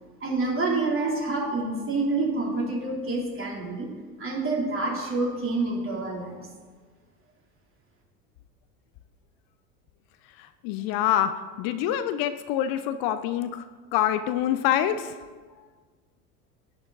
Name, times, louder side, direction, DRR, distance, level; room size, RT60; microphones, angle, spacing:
voice 1, 0.2-3.9 4.2-6.5, right 3 dB, 25° right, -2 dB, 3.2 m, -27 dB
voice 2, 10.4-13.7 13.9-15.2, left 11 dB, 50° left, 11 dB, 0.7 m, -26 dB
11.0 x 9.5 x 4.0 m, 1.5 s
hypercardioid pair, 80°, 46 cm